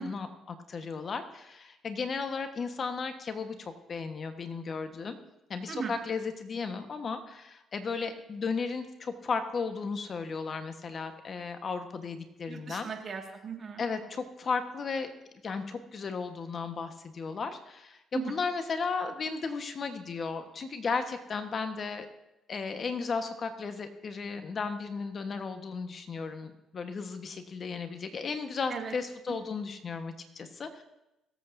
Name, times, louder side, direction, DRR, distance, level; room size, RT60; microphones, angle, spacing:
voice 1, 0.0-5.2 5.5-12.9 13.8-15.1 15.4-22.1 22.5-30.8, left 5 dB, 50° left, 7 dB, 1.3 m, -35 dB
voice 2, 12.5-13.8 18.1-18.2 28.7-28.9, right 6 dB, 50° right, 2 dB, 1.9 m, -37 dB
22.5 x 8.2 x 2.7 m, 0.91 s
supercardioid pair, 65°, 0 cm